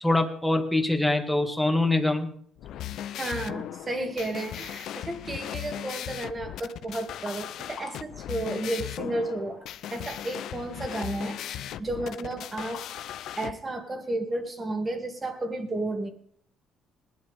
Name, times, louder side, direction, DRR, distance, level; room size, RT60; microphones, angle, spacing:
voice 1, 0.0-2.3, left 2 dB, 5° left, 5 dB, 1.8 m, -24 dB
sound 1, 2.6-13.5, left 11 dB, 70° left, 0.6 m, -38 dB
voice 2, 3.2-9.6 9.9-12.9 13.4-16.1, right 2 dB, 25° right, 5 dB, 2.5 m, -32 dB
20.0 x 11.5 x 3.6 m, 0.62 s
cardioid pair, 100°, 0 cm